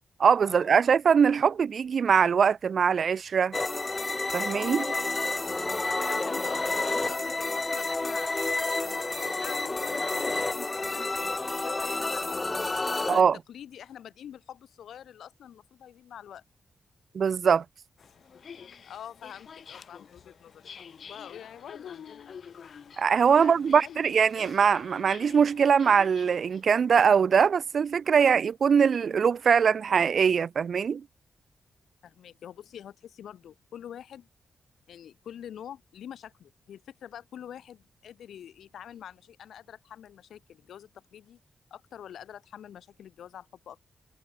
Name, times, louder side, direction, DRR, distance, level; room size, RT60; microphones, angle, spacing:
voice 1, 0.2-3.5 4.3-4.9 13.1-13.4 17.1-17.6 23.0-31.0, right 6 dB, 60° right, 0.7 m, -22 dB
sound 1, 3.5-13.2, left 3 dB, 25° left, 1.7 m, -30 dB
voice 2, 6.0-12.4 13.0-16.4 18.8-20.7 21.0-22.4 23.3-24.0 32.0-34.3 34.9-41.4 41.7-43.8, left 9 dB, 90° left, 1.8 m, -46 dB
sound 2, 18.0-26.6, left 7 dB, 60° left, 5.6 m, -48 dB
cardioid pair, 105°, 0 cm